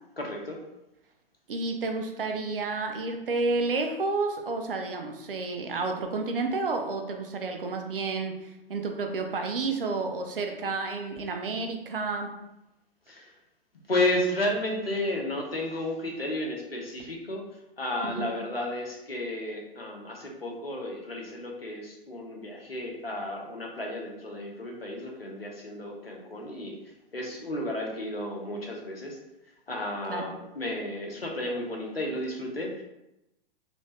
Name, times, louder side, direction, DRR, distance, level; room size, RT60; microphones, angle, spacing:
voice 1, 0.2-0.6 13.1-13.3 13.9-17.5 17.8-26.8 27.1-29.2 29.7-32.8, left 1 dB, 85° left, 0 dB, 0.9 m, -32 dB
voice 2, 1.5-12.3 18.0-18.3 30.1-30.3, right 3 dB, 70° right, 4 dB, 0.7 m, -30 dB
3.2 x 2.7 x 3.1 m, 0.90 s
figure-of-eight pair, 105°, 29 cm